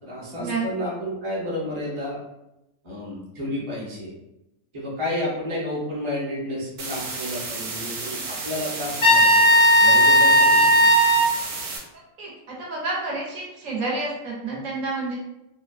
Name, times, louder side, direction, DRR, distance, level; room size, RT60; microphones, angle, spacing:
voice 1, 0.0-2.2 2.8-4.1 4.7-9.4 9.8-10.7, left 1 dB, 30° right, -6 dB, 0.6 m, -31 dB
sound 1, 6.8-11.8, right 3 dB, 90° right, 1.1 m, -32 dB
Trumpet, 9.0-11.3, equal, 55° left, 0.6 m, -15 dB
voice 2, 12.6-15.2, right 3 dB, 70° right, -3 dB, 1.0 m, -29 dB
2.9 x 2.2 x 2.4 m, 0.91 s
omnidirectional pair, 1.5 m